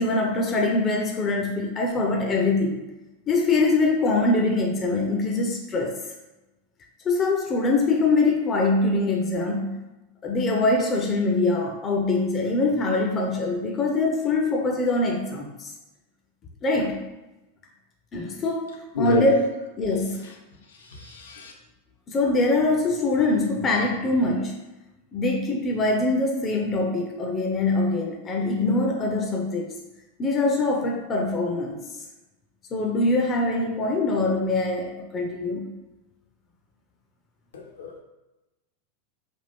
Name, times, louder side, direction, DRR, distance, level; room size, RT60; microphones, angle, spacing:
voice 1, 0.0-2.8 3.3-6.0 7.0-9.7 10.2-15.7 16.6-17.0 18.1-19.4 19.8-20.3 22.1-24.6 25.1-29.7 30.2-31.8 32.7-35.7, left 2 dB, 25° left, 2 dB, 0.6 m, -23 dB
voice 2, 18.9-19.3 20.2-20.3 20.7-21.5 37.5-38.0, left 5 dB, 65° left, 1 dB, 0.7 m, -29 dB
3.5 x 2.4 x 4.2 m, 1.0 s
figure-of-eight pair, 90°, 0 cm